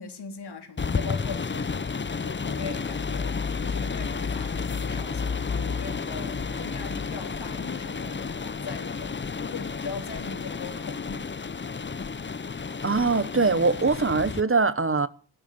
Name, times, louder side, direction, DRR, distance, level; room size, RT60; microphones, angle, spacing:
voice 1, 0.0-11.3, left 5 dB, 75° left, 3.6 m, -40 dB
sound 1, 0.8-14.4, left 5 dB, 30° left, 0.7 m, -31 dB
sound 2, 2.5-8.8, right 2 dB, 75° right, 6.7 m, -52 dB
voice 2, 12.8-15.1, right 4 dB, 30° right, 1.1 m, -22 dB
12.5 x 12.5 x 9.5 m
cardioid pair, 55°, 40 cm